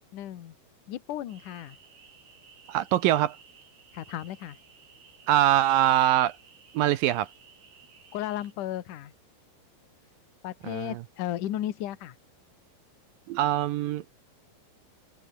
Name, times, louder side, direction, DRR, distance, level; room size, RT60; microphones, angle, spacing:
voice 1, 0.1-0.5 0.9-1.8 3.9-4.6 8.1-9.1 10.4-12.2, left 12 dB, 60° left, 2.7 m, -34 dB
sound 1, 1.3-8.5, right 6 dB, 60° right, 6.3 m, -56 dB
voice 2, 2.7-3.4 5.3-6.4 6.7-7.3 10.6-11.0 13.3-14.0, right 13 dB, 80° right, 2.1 m, -23 dB
omnidirectional pair, 5.0 m